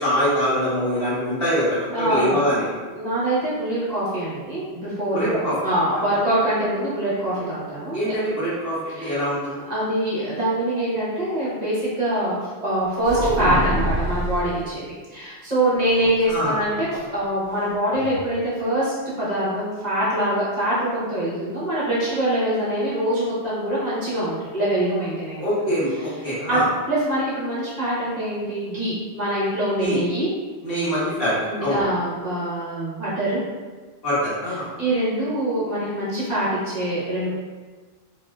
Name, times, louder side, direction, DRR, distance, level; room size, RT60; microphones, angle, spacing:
voice 1, 0.0-2.6 5.1-5.5 7.9-9.6 16.3-16.6 25.4-26.7 29.8-30.0 30.6-31.3 31.6-31.8 34.0-34.7, equal, 60° left, -10 dB, 1.4 m, -23 dB
voice 2, 1.9-2.5 2.9-8.0 8.9-9.1 9.7-14.8 15.1-25.5 26.5-26.6 26.9-30.3 31.4-33.4 34.8-37.3, right 1 dB, 40° right, -10 dB, 0.9 m, -24 dB
sound 1, 13.0-14.5 16.2-17.2 17.5-17.6 17.9-18.2, right 1 dB, 75° left, 1.0 m, -25 dB
2.9 x 2.6 x 2.2 m, 1.4 s
omnidirectional pair, 1.1 m